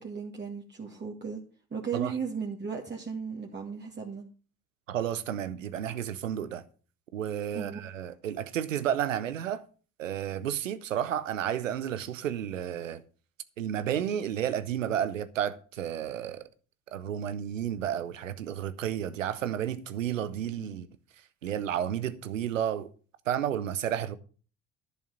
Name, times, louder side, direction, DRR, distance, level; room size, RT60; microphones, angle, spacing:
voice 1, 0.0-1.4 1.7-4.2 7.5-7.8 20.6-20.7, right 6 dB, 30° right, 1.9 m, -36 dB
voice 2, 4.9-6.6 7.1-9.6 10.0-13.0 13.6-16.4 16.9-20.9 21.4-22.9 23.3-24.2, right 10 dB, 90° right, 0.7 m, -31 dB
11.0 x 6.4 x 6.4 m
hypercardioid pair, 50°, 38 cm